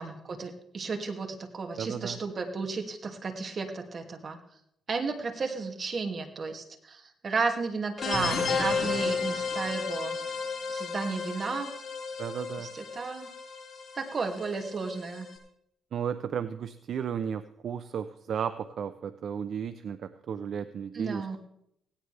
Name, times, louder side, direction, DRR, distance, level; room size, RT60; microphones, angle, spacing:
voice 1, 0.0-4.4 4.9-10.2 10.7-11.7 12.6-13.3 14.0-15.3 20.9-21.4, right 4 dB, 40° right, 4 dB, 2.4 m, -33 dB
voice 2, 1.8-2.2 12.2-12.7 15.9-21.4, right 8 dB, 60° right, 12 dB, 0.7 m, -34 dB
sound 1, 8.0-15.3, left 5 dB, 40° left, 7.5 m, -33 dB
17.5 x 17.5 x 3.5 m, 0.77 s
cardioid pair, 90°, 0 cm